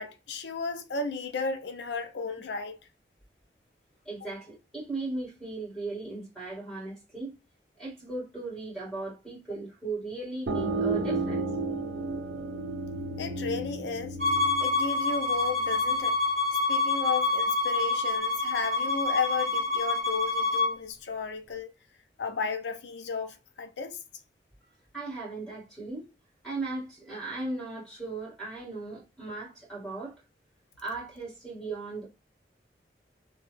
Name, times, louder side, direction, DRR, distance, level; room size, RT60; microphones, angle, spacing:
voice 1, 0.0-2.8 13.2-14.2 14.6-16.2 16.7-21.7 22.2-24.0, left 5 dB, 85° left, 0.5 m, -33 dB
voice 2, 4.1-7.3 7.8-11.4 24.9-26.1 26.4-30.1 30.8-32.0, right 3 dB, 5° left, 1.8 m, -37 dB
sound 1, 10.5-15.9, right 3 dB, 70° right, 0.6 m, -33 dB
Bowed string instrument, 14.2-20.7, left 3 dB, 35° right, 1.2 m, -27 dB
3.0 x 2.2 x 3.1 m
head